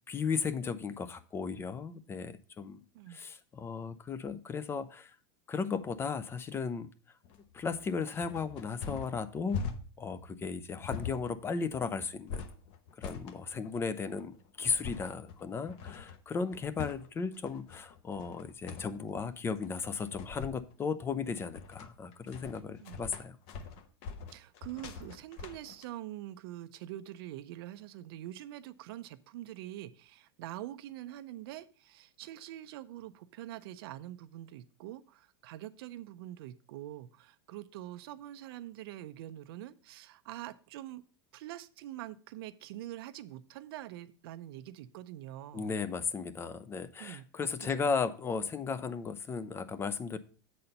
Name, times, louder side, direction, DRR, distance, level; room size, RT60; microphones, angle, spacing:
voice 1, 0.1-2.8 3.1-5.1 5.5-6.9 7.5-9.6 10.0-12.4 13.0-23.4 45.5-50.2, left 5 dB, 20° left, 0.5 m, -35 dB
sound 1, 7.2-25.8, left 6 dB, 50° left, 0.9 m, -43 dB
voice 2, 24.3-41.0 41.3-45.7 47.0-48.0, right 13 dB, 70° right, 0.5 m, -45 dB
7.8 x 4.3 x 5.3 m
supercardioid pair, 135°, 13 cm